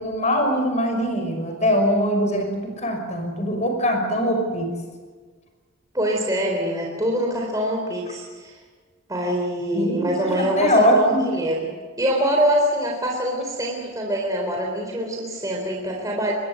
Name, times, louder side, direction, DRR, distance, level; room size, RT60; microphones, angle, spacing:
voice 1, 0.0-4.7 9.7-11.2, equal, 35° left, 4 dB, 5.7 m, -22 dB
voice 2, 5.9-8.5 9.1-11.6 12.0-16.3, equal, 15° right, -1 dB, 3.9 m, -24 dB
25.0 x 20.5 x 8.0 m, 1.5 s
head